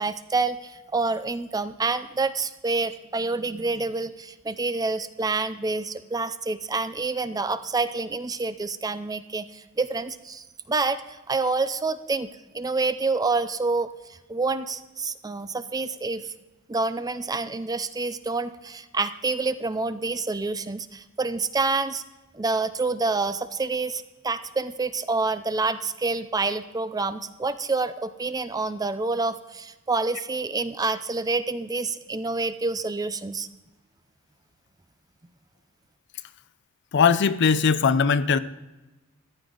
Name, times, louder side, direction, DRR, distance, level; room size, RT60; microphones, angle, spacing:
voice 1, 0.0-13.9 14.3-16.3 16.7-22.0 22.3-33.5, right 3 dB, 20° right, 12 dB, 0.5 m, -27 dB
voice 2, 36.9-38.4, left 6 dB, 55° left, 14 dB, 0.5 m, -20 dB
14.5 x 11.0 x 3.8 m, 1.1 s
head